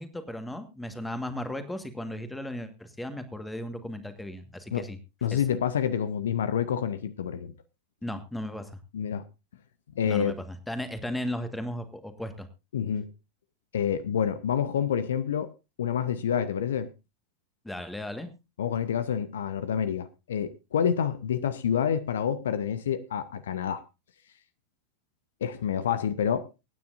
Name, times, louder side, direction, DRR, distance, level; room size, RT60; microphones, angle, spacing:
voice 1, 0.0-5.0 5.3-5.4 8.0-8.7 10.0-12.5 17.6-18.3, left 1 dB, 5° left, 1.6 m, -36 dB
voice 2, 5.2-7.5 8.9-9.2 10.0-10.3 12.7-13.1 13.7-15.5 15.8-16.9 18.6-23.8 25.4-26.5, left 8 dB, 60° left, 0.8 m, -28 dB
24.5 x 9.5 x 2.6 m
figure-of-eight pair, 90°, 0 cm